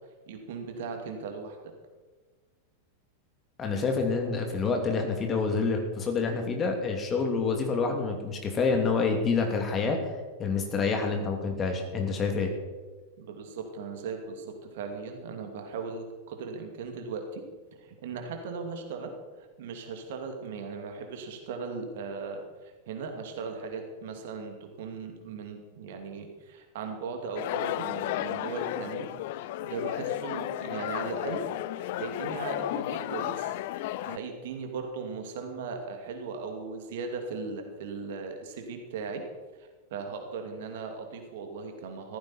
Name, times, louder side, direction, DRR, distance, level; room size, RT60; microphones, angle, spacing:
voice 1, 0.3-1.7 13.2-17.4 17.8-19.1 19.4-29.1 29.6-31.4 31.8-33.6 34.0-39.2 39.9-42.2, right 4 dB, 55° right, 4 dB, 2.6 m, -38 dB
voice 2, 3.6-10.0 10.4-12.5, left 4 dB, 25° left, 3 dB, 2.8 m, -27 dB
sound 1, 27.4-34.2, left 14 dB, 50° left, 0.5 m, -33 dB
15.5 x 14.5 x 4.5 m, 1.3 s
figure-of-eight pair, 90°, 0 cm